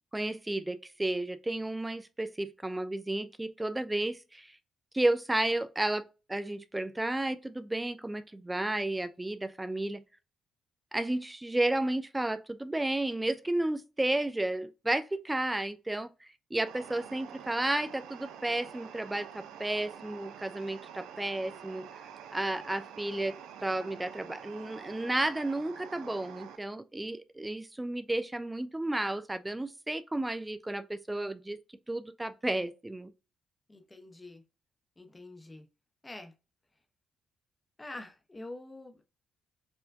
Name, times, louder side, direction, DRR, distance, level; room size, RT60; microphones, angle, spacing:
voice 1, 0.1-4.5 4.9-10.0 10.9-21.9 22.3-23.4 23.6-31.6 31.9-33.1, right 1 dB, 10° right, 0.4 m, -32 dB
sound 1, 16.7-26.6, right 8 dB, 90° right, 0.5 m, -47 dB
voice 2, 33.7-34.4 35.0-35.7 36.0-36.3 37.8-39.0, left 2 dB, 20° left, 0.7 m, -46 dB
4.3 x 2.1 x 2.6 m
cardioid pair, 90°, 0 cm